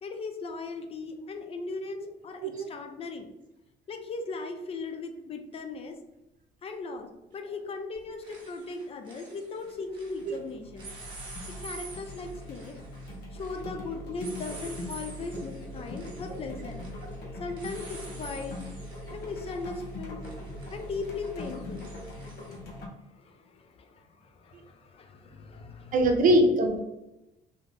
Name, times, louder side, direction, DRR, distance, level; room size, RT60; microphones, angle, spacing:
voice 1, 0.0-3.3 3.9-6.0 6.6-10.9 11.5-12.8 13.3-16.8 17.4-18.6 19.1-20.2 20.7-21.9 23.0-26.0, left 3 dB, 35° left, 6 dB, 0.4 m, -38 dB
sound 1, 5.5-5.6 7.4-7.7 7.9-10.4 10.7-22.6, right 3 dB, 30° right, 1.0 m, -48 dB
sound 2, 9.6-9.9 10.2-22.9, left 1 dB, 75° left, 0.7 m, -41 dB
voice 2, 25.9-26.8, right 1 dB, 50° right, 3 dB, 0.6 m, -22 dB
2.7 x 2.1 x 3.2 m, 0.94 s
cardioid pair, 110°, 17 cm